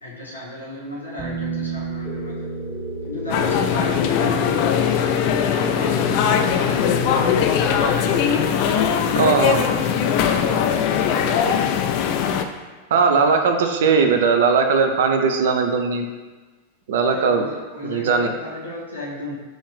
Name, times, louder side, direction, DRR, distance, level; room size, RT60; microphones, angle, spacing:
voice 1, 0.0-2.5 3.0-7.0 7.8-9.4 9.7-11.5 17.1-19.3, left 2 dB, 80° left, -6 dB, 0.9 m, -33 dB
sound 1, 1.2-7.4, right 4 dB, 40° right, 1.4 m, -34 dB
sound 2, 2.1-10.4, left 2 dB, 15° left, 0.8 m, -35 dB
sound 3, 3.3-12.4, left 8 dB, 45° left, 0.3 m, -20 dB
voice 2, 9.2-9.7 12.9-16.0 16.9-17.5 17.8-18.3, right 5 dB, 60° right, 5 dB, 0.5 m, -18 dB
6.2 x 2.6 x 3.2 m, 1.3 s
figure-of-eight pair, 90°, 0 cm